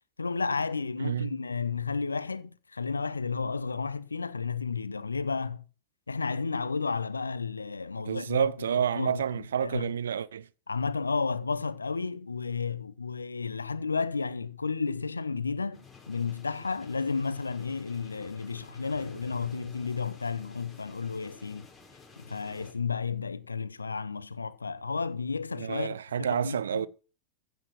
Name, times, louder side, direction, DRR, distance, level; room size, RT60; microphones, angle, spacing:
voice 1, 0.2-5.6 6.1-9.9 10.7-21.7 22.2-26.9, left 4 dB, 75° left, 0.8 m, -32 dB
voice 2, 1.0-1.4 8.1-10.5 25.6-26.9, right 8 dB, 65° right, 0.6 m, -29 dB
sound 1, 15.7-22.7, left 4 dB, 15° left, 4.7 m, -52 dB
15.5 x 7.1 x 5.9 m
figure-of-eight pair, 90°, 0 cm